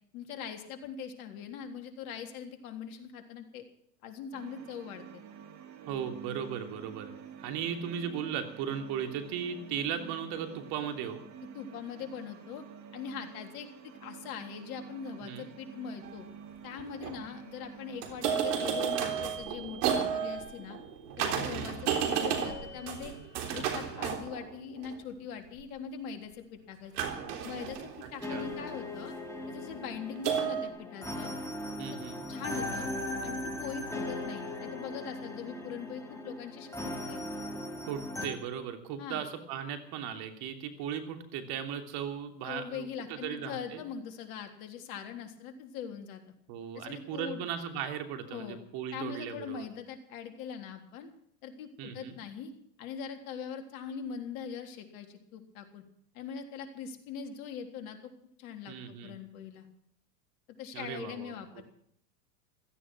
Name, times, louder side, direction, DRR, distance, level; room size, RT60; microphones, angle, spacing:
voice 1, 0.1-3.6 4.0-5.2 11.5-12.6 12.9-16.3 16.6-20.8 21.2-23.1 23.5-26.9 27.4-29.1 29.5-31.3 32.3-32.9 33.2-37.2 39.0-39.2 42.4-46.2 46.7-47.4 48.3-48.6 48.9-51.1 51.4-52.5 52.8-55.8 56.1-58.0 58.4-59.7 60.6-61.6, left 7 dB, 60° left, 5 dB, 3.6 m, -42 dB
sound 1, 4.3-18.0, right 7 dB, 35° right, 2.9 m, -48 dB
voice 2, 5.9-7.1 7.4-11.2 15.2-15.5 21.5-21.7 28.3-28.5 31.8-32.2 37.9-43.8 46.5-49.7 51.8-52.2 58.7-59.1 60.7-61.6, right 8 dB, 50° right, 6 dB, 3.2 m, -37 dB
sound 2, 16.1-16.2 16.8-17.2 18.0-25.0 27.0-28.9 30.2-30.7, right 7 dB, 65° right, 3.6 m, -33 dB
sound 3, 28.2-38.3, left 1 dB, 5° left, 3.5 m, -38 dB
16.0 x 14.5 x 6.2 m, 0.68 s
hypercardioid pair, 100°, 50 cm